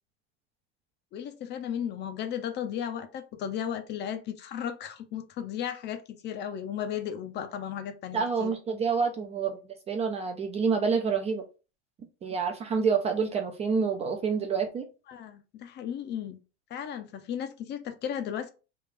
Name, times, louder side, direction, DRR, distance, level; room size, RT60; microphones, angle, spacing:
voice 1, 1.1-8.6 15.1-16.4 16.7-18.5, left 9 dB, 35° left, 0.5 m, -35 dB
voice 2, 8.1-9.6 9.9-11.5 12.2-14.9, right 5 dB, 20° right, 0.4 m, -27 dB
3.3 x 2.3 x 3.5 m
supercardioid pair, 125°, 32 cm